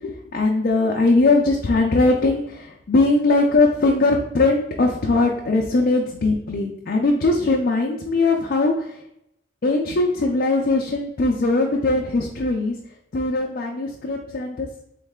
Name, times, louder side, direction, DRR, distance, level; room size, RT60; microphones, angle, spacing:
voice 1, 0.0-9.0 9.6-12.8 13.1-14.7, left 2 dB, 50° left, -1 dB, 0.4 m, -20 dB
3.2 x 3.1 x 3.6 m, 0.77 s
head